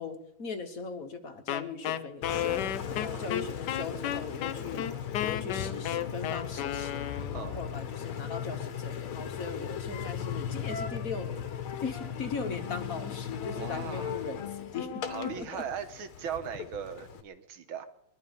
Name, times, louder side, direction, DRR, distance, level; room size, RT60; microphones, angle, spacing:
voice 1, 0.0-11.5 11.8-15.6, left 4 dB, 45° left, 7 dB, 1.5 m, -39 dB
Wind instrument woodwind instrument, 1.5-7.5, left 10 dB, 65° left, 1.2 m, -33 dB
Engine, 2.2-17.2, left 8 dB, 85° left, 2.0 m, -37 dB
voice 2, 13.5-14.1 15.1-17.8, right 8 dB, 80° right, 10 dB, 2.0 m, -39 dB
22.5 x 12.0 x 5.3 m, 0.80 s
omnidirectional pair, 2.3 m